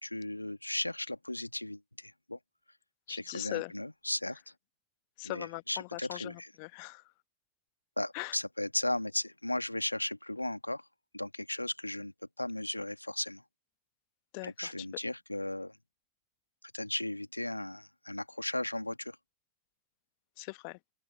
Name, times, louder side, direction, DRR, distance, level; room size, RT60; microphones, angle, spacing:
voice 1, 0.0-2.4 3.1-4.4 5.2-6.5 8.0-10.9 11.1-13.4 14.4-15.8 16.7-19.2, left 1 dB, 85° left, 2.1 m, -36 dB
voice 2, 3.1-3.7 5.2-7.1 8.1-8.4 14.3-14.9 20.4-20.8, left 34 dB, 45° left, 1.2 m, -41 dB
open air
figure-of-eight pair, 90°, 0 cm